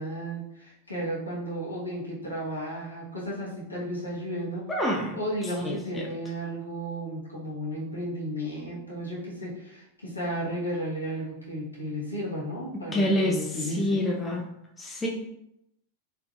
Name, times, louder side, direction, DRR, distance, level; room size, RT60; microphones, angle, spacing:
voice 1, 0.0-4.7 5.1-14.0, equal, 80° left, -5 dB, 1.1 m, -33 dB
voice 2, 4.7-5.2 5.6-6.1 12.9-13.4 13.8-14.4 14.8-15.1, left 1 dB, 15° left, -1 dB, 0.5 m, -26 dB
3.6 x 2.8 x 2.3 m, 0.83 s
figure-of-eight pair, 90°, 0 cm